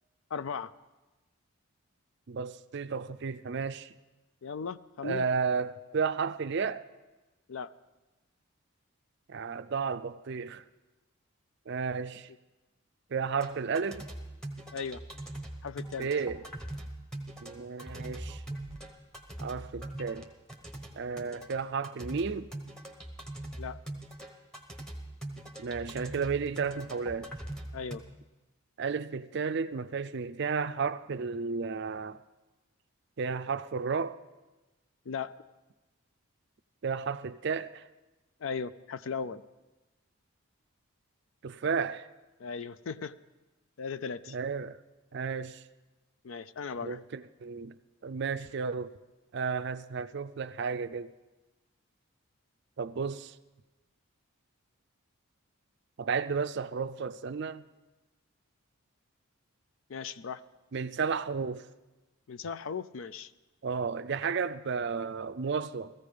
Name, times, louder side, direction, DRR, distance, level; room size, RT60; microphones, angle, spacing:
voice 1, 0.3-0.7 4.4-5.3 7.5-7.7 14.7-15.0 15.6-16.1 23.6-23.8 27.7-28.0 35.1-35.3 38.4-39.4 42.4-43.1 43.8-44.4 46.2-47.0 59.9-60.4 62.3-63.3, left 5 dB, 60° left, 0.4 m, -37 dB
voice 2, 2.3-3.9 5.0-6.9 9.3-10.6 11.7-12.3 13.1-14.1 16.0-16.4 17.4-18.4 19.4-20.3 20.9-22.5 25.6-27.3 28.8-32.2 33.2-34.2 36.8-37.8 41.4-42.1 44.3-44.8 45.1-45.6 46.8-47.8 48.0-48.9 49.3-51.1 52.8-53.4 56.0-57.6 60.7-61.7 63.6-65.9, right 5 dB, 50° right, 0.4 m, -33 dB
sound 1, 13.4-28.0, right 1 dB, 5° left, 1.1 m, -42 dB
16.0 x 14.5 x 5.1 m
head